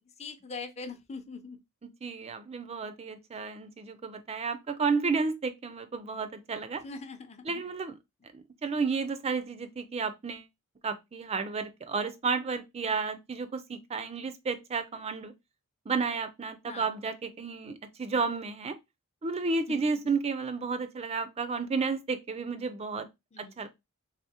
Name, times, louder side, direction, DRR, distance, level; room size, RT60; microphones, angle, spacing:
voice 1, 0.2-1.6 6.8-7.6 16.6-16.9 19.7-20.0 23.3-23.6, left 4 dB, 30° left, 0.6 m, -42 dB
voice 2, 2.0-6.8 7.5-7.9 8.3-10.4 10.8-15.3 15.9-18.7 19.2-23.1 23.4-23.7, right 4 dB, 30° right, 0.4 m, -32 dB
3.6 x 3.4 x 2.8 m
head